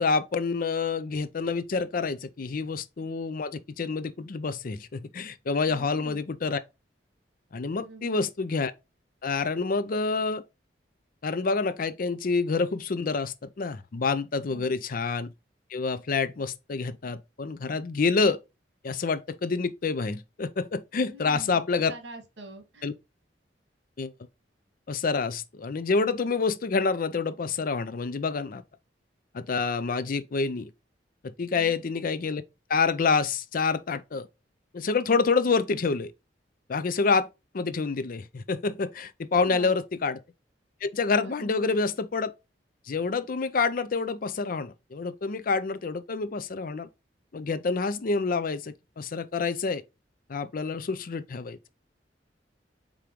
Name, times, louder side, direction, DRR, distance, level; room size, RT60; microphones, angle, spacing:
voice 1, 0.0-6.6 7.5-8.7 9.2-10.4 11.2-15.3 15.7-18.4 18.8-21.9 22.8-22.9 24.0-24.1 24.9-28.6 29.3-30.7 31.2-32.4 32.7-34.3 34.7-36.1 36.7-37.3 37.5-40.2 40.8-42.3 42.9-46.9 47.3-49.8 50.3-51.6, left 4 dB, 50° left, 0.5 m, -27 dB
voice 2, 5.7-6.2 7.8-8.2 14.5-14.7 21.0-21.6 21.9-22.9 31.5-31.8 39.4-39.7 41.2-41.7, right 1 dB, 75° right, 1.6 m, -45 dB
5.1 x 3.6 x 2.9 m
head